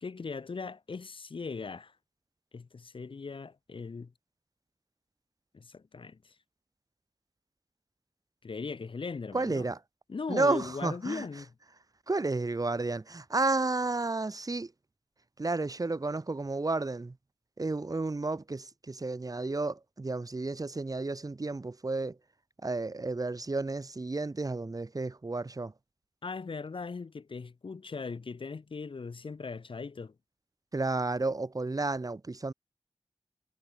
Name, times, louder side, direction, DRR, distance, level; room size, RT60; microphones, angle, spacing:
voice 1, 0.0-1.9 2.5-4.1 5.5-6.3 8.4-9.6 10.1-11.5 26.2-30.1, left 4 dB, 55° left, 0.7 m, -39 dB
voice 2, 9.3-9.8 10.3-11.3 12.1-14.7 15.4-17.2 17.6-22.2 22.6-25.7 30.7-32.5, right 3 dB, 35° right, 0.9 m, -32 dB
wide cardioid pair, 65°, 10 cm